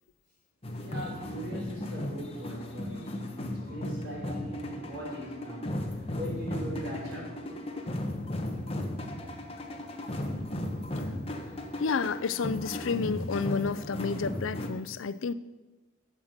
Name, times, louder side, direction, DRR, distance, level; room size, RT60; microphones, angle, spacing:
sound 1, 0.6-14.7, left 1 dB, 30° left, 1.2 m, -36 dB
voice 1, 0.8-5.8 6.1-7.4, right 1 dB, 55° right, -4 dB, 5.4 m, -40 dB
voice 2, 11.8-15.3, left 5 dB, 70° left, 15 dB, 0.5 m, -30 dB
13.0 x 7.3 x 6.7 m, 1.1 s
head